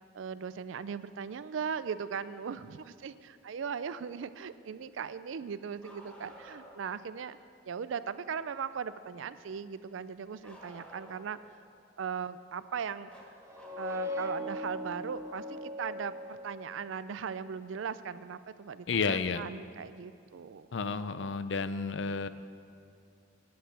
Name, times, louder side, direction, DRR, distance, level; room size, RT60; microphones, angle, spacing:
voice 1, 0.1-7.4 7.7-11.6 12.0-13.1 13.8-20.7, right 6 dB, 75° right, 14 dB, 0.4 m, -38 dB
Bark, 5.8-6.9 10.4-11.5 13.1-14.6 16.3-16.4 18.3-18.4 19.5-19.6, right 1 dB, 10° left, 1.9 m, -52 dB
sound 1, 13.4-17.0, left 1 dB, 15° right, 0.6 m, -39 dB
voice 2, 18.9-19.4 20.7-22.3, left 5 dB, 65° left, 12 dB, 0.5 m, -31 dB
10.0 x 9.0 x 6.6 m, 2.4 s
head